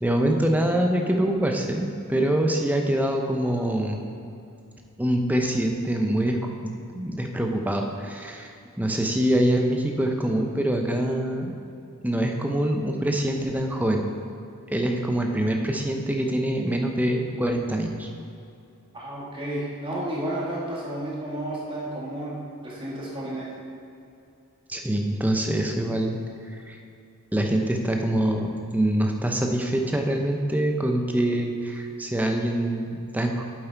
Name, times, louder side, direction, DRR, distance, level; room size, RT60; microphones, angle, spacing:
voice 1, 0.0-4.1 5.0-11.5 12.0-14.1 14.7-18.1 24.7-26.2 26.5-26.8 27.3-33.4, right 1 dB, 5° right, 3 dB, 0.5 m, -25 dB
voice 2, 18.9-23.5, right 1 dB, 25° right, -5 dB, 1.6 m, -32 dB
8.0 x 7.4 x 4.5 m, 2.6 s
head